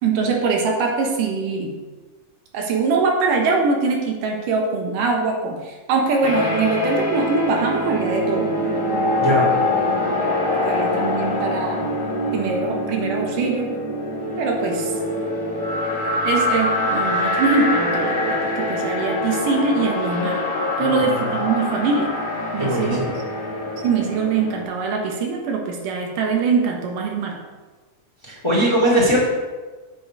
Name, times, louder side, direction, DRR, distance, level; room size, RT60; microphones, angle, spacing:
voice 1, 0.0-1.7 2.5-8.6 10.7-11.9 12.3-13.8 14.4-14.9 16.2-20.4 20.8-22.2 22.5-23.0 23.8-27.4, right 4 dB, 85° right, 1 dB, 2.9 m, -22 dB
sound 1, 6.2-24.6, left 1 dB, 40° left, 1.3 m, -24 dB
voice 2, 9.2-9.5 20.8-21.3 22.6-23.1 28.2-29.3, equal, 10° left, -4 dB, 1.9 m, -20 dB
7.9 x 7.8 x 4.9 m, 1.3 s
omnidirectional pair, 3.6 m